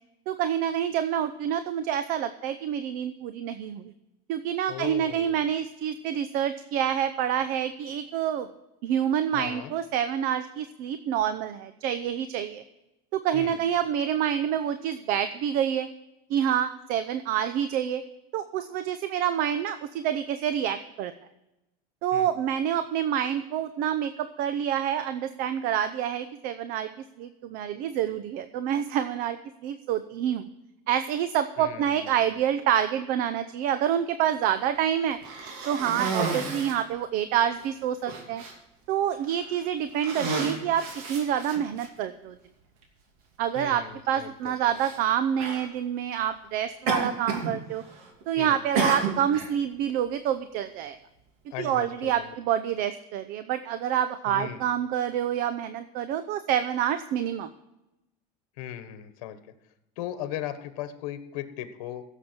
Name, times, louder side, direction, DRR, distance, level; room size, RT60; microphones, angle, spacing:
voice 1, 0.3-3.9 4.3-8.5 8.8-12.6 13.1-15.9 16.3-18.0 18.3-21.1 22.0-26.9 27.2-30.5 30.9-35.2 35.6-38.4 38.9-42.3 43.4-47.8 48.3-51.0 51.6-57.5, right 9 dB, 50° right, 11 dB, 0.7 m, -27 dB
voice 2, 4.7-5.5 9.3-9.7 13.3-13.6 22.1-22.3 31.6-32.3 43.5-44.8 48.4-48.6 51.5-52.3 54.3-54.6 58.6-59.4 60.0-62.0, left 11 dB, 75° left, 10 dB, 1.3 m, -38 dB
Cough, 35.2-36.9 37.6-37.7 38.1-38.5 39.3-39.5 39.9-41.9 42.8-42.9 44.7-45.0 45.4-45.7 46.9-47.5 47.8-48.2 48.8-49.5, right 4 dB, 75° right, 2.7 m, -30 dB
16.5 x 7.2 x 4.4 m, 0.94 s
cardioid pair, 155°, 19 cm